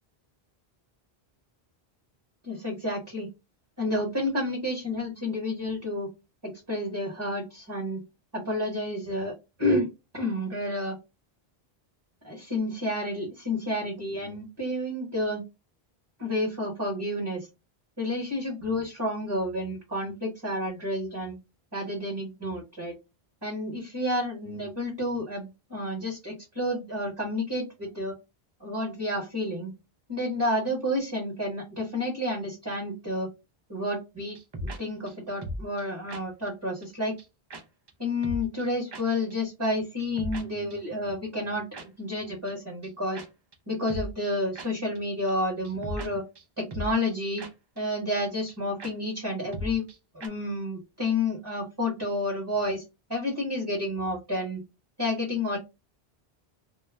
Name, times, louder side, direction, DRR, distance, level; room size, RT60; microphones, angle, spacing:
voice 1, 2.4-3.3 3.8-6.1 6.4-8.0 8.3-9.9 10.1-11.0 12.2-15.4 16.2-17.5 18.0-21.4 21.7-23.0 23.4-28.2 28.6-29.7 30.1-33.3 33.7-34.4 34.6-37.2 38.0-43.2 43.7-46.2 46.6-47.4 47.8-49.8 50.1-52.8 53.1-54.6 55.0-55.6, left 1 dB, 25° right, -1 dB, 0.9 m, -30 dB
sound 1, 34.4-34.8 35.1-35.2 35.4-35.8 36.1-36.2 36.5-36.6 36.8-36.9 37.2-37.3 37.5-37.6 37.9-38.0 38.2-38.7 38.9-39.0 39.3-39.4 39.6-39.7 40.0-40.4 40.7-40.8 41.7-41.9 42.1-42.2 42.5-42.6 42.8-42.9 43.2-43.3 43.5-43.6 43.9-44.3 44.6-44.7 45.0-45.1 45.3-45.4 45.6-46.1 46.4-46.5 46.7-47.1 47.4-47.5 47.8-47.9 48.1-48.2 48.5-48.6 48.8-48.9 49.2-49.3 49.5-50.0 50.2-50.3, equal, 45° right, 0.3 m, -36 dB
2.2 x 2.1 x 3.2 m, 0.26 s
omnidirectional pair, 1.0 m